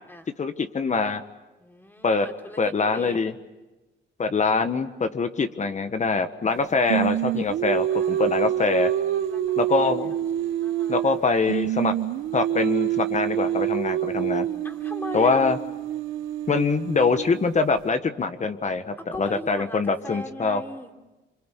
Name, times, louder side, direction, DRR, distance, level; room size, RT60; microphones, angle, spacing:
voice 1, 0.4-1.2 2.0-2.3 2.6-3.3 4.2-8.9 9.6-10.1 10.9-12.0 12.3-14.5 15.1-15.6 16.5-20.6, left 4 dB, 35° left, 9 dB, 1.5 m, -24 dB
voice 2, 1.6-3.3 7.6-7.7 7.9-8.8 9.1-11.3 14.6-15.5 19.0-20.9, equal, 10° left, 4 dB, 3.5 m, -40 dB
Singing, 6.9-11.2 11.5-17.5, right 11 dB, 80° right, 1.0 m, -26 dB
26.5 x 24.5 x 8.4 m, 1.1 s
cardioid pair, 90°, 20 cm